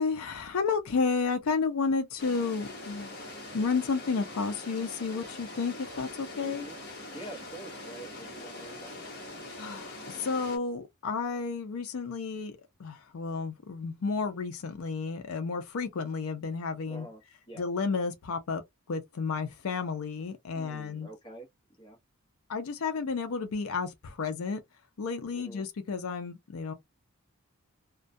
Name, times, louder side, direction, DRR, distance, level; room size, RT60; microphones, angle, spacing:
voice 1, 0.0-3.1 3.5-6.7 9.6-17.1 17.6-18.6 18.9-21.1 22.5-24.6 25.0-26.7, left 4 dB, 75° left, 0.5 m, -32 dB
sound 1, 2.2-10.6, left 2 dB, 50° left, 0.9 m, -43 dB
voice 2, 6.3-6.8 7.1-9.1 16.9-17.2 17.5-17.6 20.5-21.5 21.8-22.0 25.3-25.7, right 2 dB, 20° left, 0.8 m, -46 dB
2.2 x 2.2 x 2.6 m
head